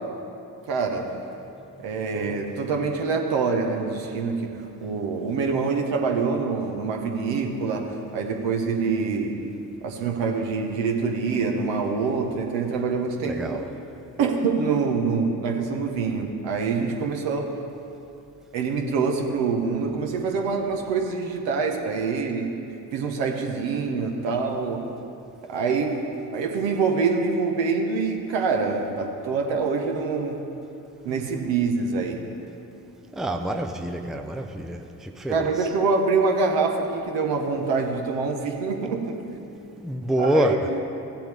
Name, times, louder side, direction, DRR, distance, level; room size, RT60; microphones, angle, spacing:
voice 1, 0.7-1.1 1.8-4.5 4.8-9.4 9.8-13.6 14.2-17.5 18.5-22.5 22.9-24.9 25.5-26.0 26.3-30.4 31.0-32.2 35.3-39.1 40.2-40.8, right 4 dB, 60° right, 2 dB, 1.5 m, -25 dB
voice 2, 13.2-13.6 33.1-35.5 39.8-40.7, right 1 dB, ahead, 4 dB, 0.7 m, -26 dB
16.5 x 7.6 x 3.6 m, 2.8 s
hypercardioid pair, 50°, 48 cm